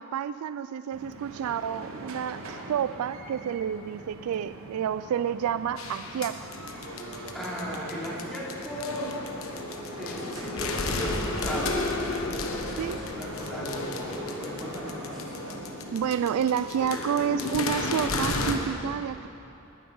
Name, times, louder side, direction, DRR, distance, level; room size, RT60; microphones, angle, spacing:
voice 1, 0.0-6.5 12.8-13.0 15.9-19.3, right 8 dB, 90° right, 14 dB, 0.3 m, -29 dB
sound 1, 0.9-17.8, right 2 dB, 75° right, 1.1 m, -43 dB
sound 2, 5.8-18.5, left 2 dB, 70° left, 1.1 m, -33 dB
voice 2, 7.3-9.1 10.0-15.4, equal, ahead, -8 dB, 3.1 m, -37 dB
19.5 x 9.5 x 5.4 m, 3.0 s
head